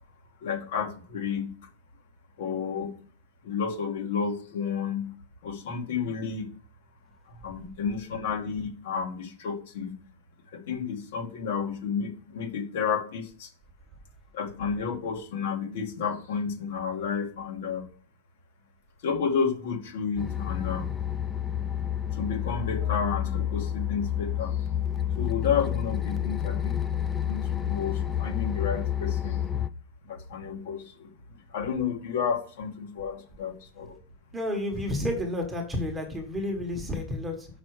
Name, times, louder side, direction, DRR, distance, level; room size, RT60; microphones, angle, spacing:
voice 1, 0.4-1.5 2.4-2.9 3.4-5.1 5.4-6.5 7.4-9.9 10.5-13.5 14.3-17.8 19.0-20.9 22.1-24.6 25.2-26.8 27.2-29.5 30.1-31.1 31.5-34.0 34.9-35.0, left 6 dB, 60° left, 3 dB, 1.9 m, -31 dB
sound 1, 20.2-29.7, left 10 dB, 10° left, 0.4 m, -29 dB
voice 2, 34.3-37.5, left 1 dB, 5° right, 2 dB, 1.3 m, -31 dB
6.2 x 5.9 x 4.8 m, 0.43 s
supercardioid pair, 170°, 0 cm